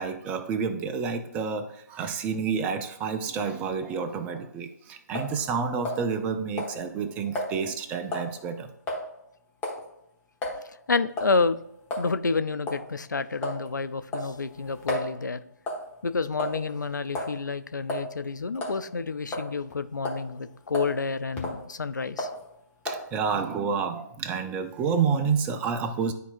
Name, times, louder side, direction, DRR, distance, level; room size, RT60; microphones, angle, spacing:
voice 1, 0.0-8.7 22.8-26.1, right 6 dB, 15° right, 8 dB, 0.4 m, -29 dB
sound 1, 5.1-5.4 5.9-6.3 6.6-6.8 7.4-7.5 8.1-8.3 8.9-9.0 9.6-9.8 10.4-10.6 11.2-11.4 11.9-12.1 12.7-12.8 13.4-13.7 14.1-15.1 15.7-15.9 16.4-16.7 17.2-17.4 17.9-18.1 18.6-18.8 19.3-19.7 20.1-20.3 20.7-21.0 21.4-21.6 22.2-22.4 22.9-23.1, left 1 dB, 15° left, 1.3 m, -32 dB
voice 2, 10.9-11.6 12.0-15.4 16.0-22.3, left 4 dB, 75° left, 12 dB, 0.5 m, -29 dB
12.0 x 4.1 x 2.5 m, 0.80 s
figure-of-eight pair, 140°, 10 cm